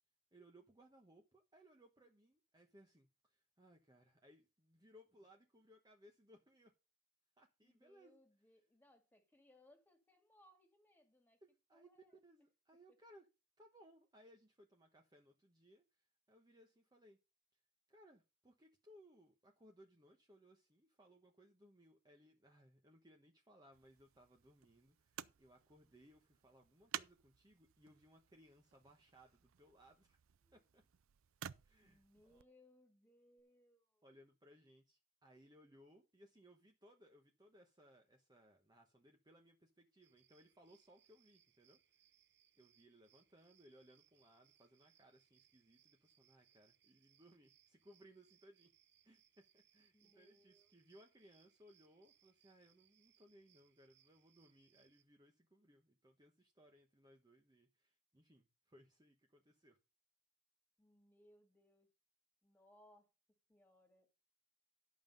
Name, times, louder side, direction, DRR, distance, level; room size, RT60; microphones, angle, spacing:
voice 1, 0.3-6.7 7.4-8.2 11.4-13.2 13.6-17.2 17.9-30.2 30.5-30.8 31.6-32.4 34.0-41.8 42.6-48.7 49.0-59.8, equal, 20° right, 1.0 m, -66 dB
voice 2, 7.6-11.4 11.7-12.2 12.9-13.0 30.4-30.6 31.8-34.1 49.9-50.8 60.8-61.9 62.4-64.1, left 1 dB, 10° left, 2.1 m, -70 dB
sound 1, 23.7-32.4 33.4-33.5, right 10 dB, 90° right, 0.5 m, -54 dB
sound 2, 40.0-55.0, right 10 dB, 55° right, 0.8 m, -75 dB
11.5 x 5.5 x 5.3 m
head